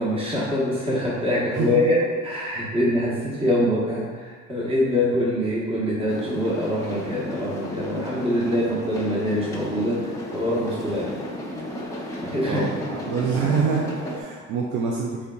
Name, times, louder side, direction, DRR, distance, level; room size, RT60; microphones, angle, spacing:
voice 1, 0.0-11.1 12.2-12.6, left 1 dB, 20° right, -7 dB, 1.0 m, -24 dB
voice 2, 1.6-1.9 12.5-15.3, right 5 dB, 90° right, -2 dB, 0.5 m, -26 dB
sound 1, 6.1-14.2, left 1 dB, 10° left, 0.8 m, -34 dB
3.9 x 3.6 x 2.2 m, 1.5 s
cardioid pair, 90°, 30 cm